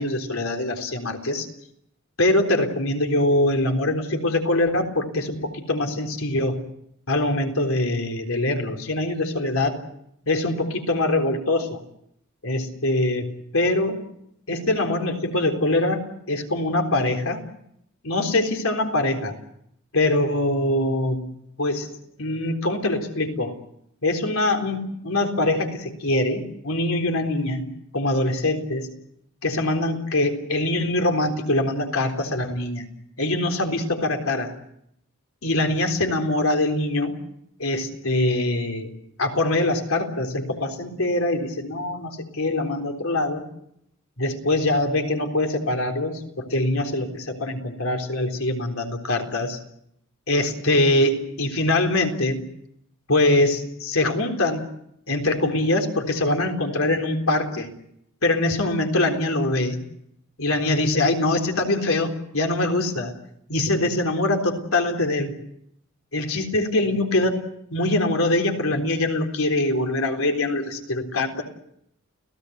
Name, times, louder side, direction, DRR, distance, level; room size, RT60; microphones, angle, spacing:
voice 1, 0.0-1.5 2.2-6.6 7.1-9.8 10.3-11.8 12.4-14.0 14.5-17.4 18.0-19.3 19.9-21.2 21.6-21.9 22.2-23.6 24.0-27.7 27.9-28.9 29.4-32.9 33.2-34.5 35.4-37.2 37.6-38.9 39.2-43.4 44.2-49.6 50.3-52.4 53.1-54.7 55.1-57.7 58.2-59.8 60.4-63.1 63.5-65.4 66.1-67.3 67.7-71.4, left 2 dB, 85° left, 4 dB, 3.8 m, -23 dB
30.0 x 17.0 x 8.1 m, 0.75 s
head